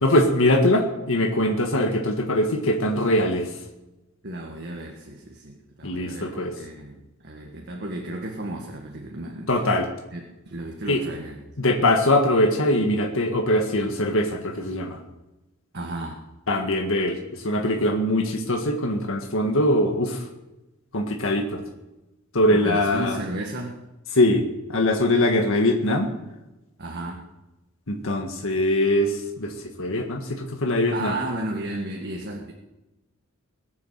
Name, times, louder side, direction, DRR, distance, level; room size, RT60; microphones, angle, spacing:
voice 1, 0.0-3.5 5.8-6.5 9.5-9.9 10.8-11.0 11.6-15.0 16.5-20.2 20.9-21.6 22.3-23.2 24.1-26.1 27.9-29.5 29.8-31.1, left 1 dB, 70° left, 2 dB, 1.7 m, -22 dB
voice 2, 4.2-9.7 10.1-11.4 15.7-16.3 22.5-23.8 26.8-27.3 30.9-32.5, right 1 dB, 55° right, 1 dB, 1.7 m, -34 dB
21.0 x 7.4 x 7.5 m, 1.0 s
head